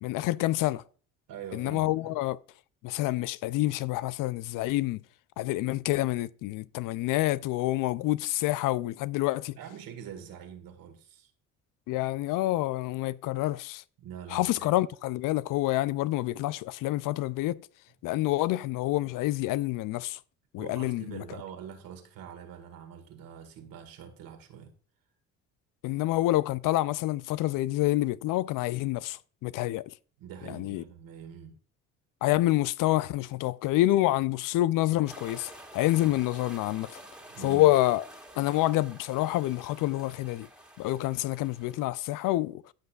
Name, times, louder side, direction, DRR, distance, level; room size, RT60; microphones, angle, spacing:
voice 1, 0.0-0.8 1.5-2.4 2.8-5.0 5.4-9.6 11.9-13.8 14.3-17.6 18.0-20.2 20.5-21.2 25.8-29.9 30.5-30.8 32.2-37.0 37.4-38.0 38.4-40.5 40.8-42.6, left 16 dB, 60° left, 0.5 m, -27 dB
voice 2, 1.3-2.2 9.6-11.3 14.0-14.7 20.6-24.7 30.2-31.5 36.0-36.2 37.3-37.7, right 8 dB, 65° right, 1.9 m, -44 dB
sound 1, 35.1-41.8, right 1 dB, 5° right, 1.9 m, -49 dB
15.0 x 5.7 x 2.4 m
hypercardioid pair, 65°, 37 cm